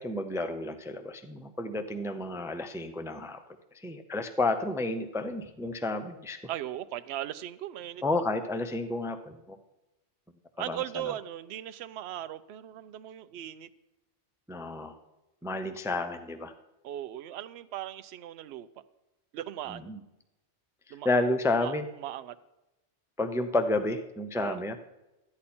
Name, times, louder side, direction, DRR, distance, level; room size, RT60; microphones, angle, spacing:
voice 1, 0.0-3.4 3.7-6.4 8.0-9.6 10.7-10.8 14.5-15.0 15.4-16.5 19.7-20.0 20.9-21.9 23.2-24.8, left 2 dB, 5° right, 9 dB, 0.4 m, -31 dB
voice 2, 6.5-8.0 10.6-13.7 16.8-18.7 19.3-19.9 20.9-21.1 21.6-21.7 22.0-22.4 24.4-24.6, right 12 dB, 65° right, 12 dB, 0.8 m, -38 dB
13.0 x 9.7 x 4.3 m, 0.98 s
omnidirectional pair, 1.2 m